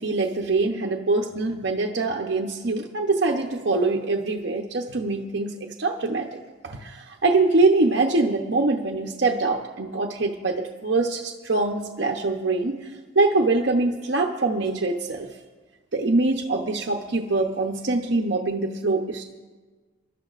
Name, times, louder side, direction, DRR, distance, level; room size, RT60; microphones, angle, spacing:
voice 1, 0.0-6.4 6.6-12.9 13.2-15.3 15.9-19.2, right 3 dB, 60° right, 1 dB, 0.8 m, -24 dB
27.5 x 12.0 x 2.5 m, 1.4 s
head